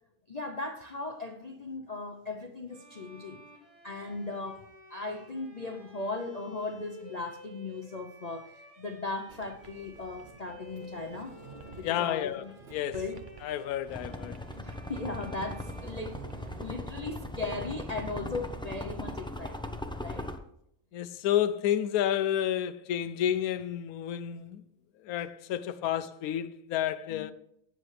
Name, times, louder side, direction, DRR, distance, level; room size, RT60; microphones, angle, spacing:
voice 1, 0.3-3.4 3.8-11.3 11.8-12.5 12.9-13.2 14.6-16.2 16.6-20.3 27.1-27.3, left 3 dB, 35° left, 0.7 m, -38 dB
Bowed string instrument, 2.7-16.8, right 1 dB, 20° right, 5.2 m, -53 dB
Sliding door, 9.3-18.9, right 5 dB, 45° right, 0.7 m, -51 dB
voice 2, 11.8-12.4 12.7-13.0 13.4-14.4 20.9-24.6 25.0-27.3, left 11 dB, 80° left, 1.1 m, -30 dB
sound 1, 13.9-20.4, left 1 dB, 5° left, 0.4 m, -39 dB
17.5 x 7.9 x 3.3 m
omnidirectional pair, 1.5 m